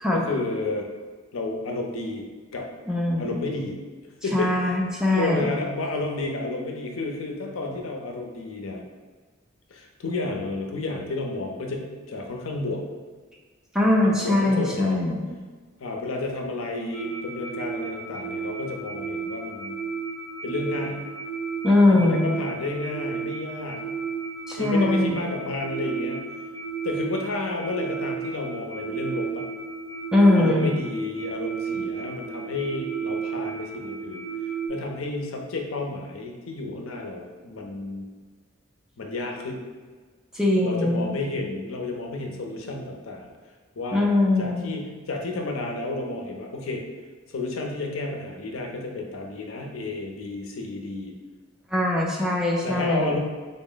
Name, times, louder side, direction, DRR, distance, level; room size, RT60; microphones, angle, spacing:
voice 1, 0.1-0.9 1.3-2.2 2.5-2.7 3.2-3.8 4.2-4.8 5.1-8.8 9.7-12.8 14.0-15.0 15.8-19.7 20.4-21.0 21.9-23.8 24.6-26.3 26.8-29.5 30.3-38.1 39.0-39.6 40.6-43.3 43.8-44.1 44.4-46.8 47.3-51.1 52.6-53.2, left 2 dB, 85° left, 2 dB, 0.5 m, -31 dB
voice 2, 2.9-3.4 4.3-5.5 13.7-15.2 21.6-22.2 24.5-25.2 30.1-30.7 40.3-41.2 43.9-44.7 51.7-53.2, left 2 dB, 5° right, -3 dB, 0.4 m, -21 dB
sound 1, 16.9-34.7, right 5 dB, 90° right, 0.5 m, -33 dB
3.9 x 2.0 x 3.8 m, 1.4 s
head